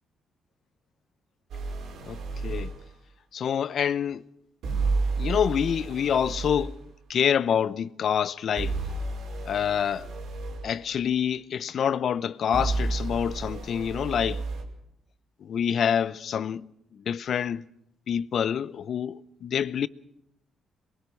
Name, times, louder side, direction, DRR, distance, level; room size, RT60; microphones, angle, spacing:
sound 1, 1.5-2.8 4.6-6.7 8.6-10.7 12.5-14.6, right 3 dB, 75° right, 5.3 m, -31 dB
voice 1, 2.1-2.7 3.3-4.2 5.2-6.7 7.1-8.7 9.5-10.1 10.6-14.4 15.4-16.7 17.1-17.6 18.1-19.9, left 8 dB, 60° left, 0.7 m, -27 dB
23.0 x 22.5 x 6.4 m
cardioid pair, 90°, 0 cm